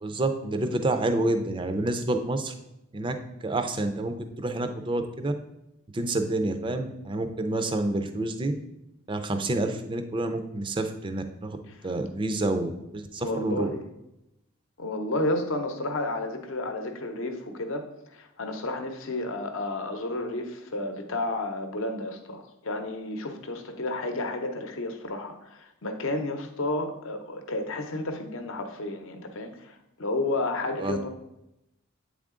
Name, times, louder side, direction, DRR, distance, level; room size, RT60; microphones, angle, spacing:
voice 1, 0.0-2.5 2.9-3.1 3.4-5.3 5.9-8.5 9.1-11.6 11.8-13.7 30.8-31.0, right 2 dB, 25° right, 7 dB, 0.4 m, -28 dB
voice 2, 13.2-13.8 14.8-17.8 18.1-31.1, left 2 dB, 70° left, 6 dB, 0.7 m, -31 dB
8.3 x 3.6 x 3.7 m, 0.88 s
head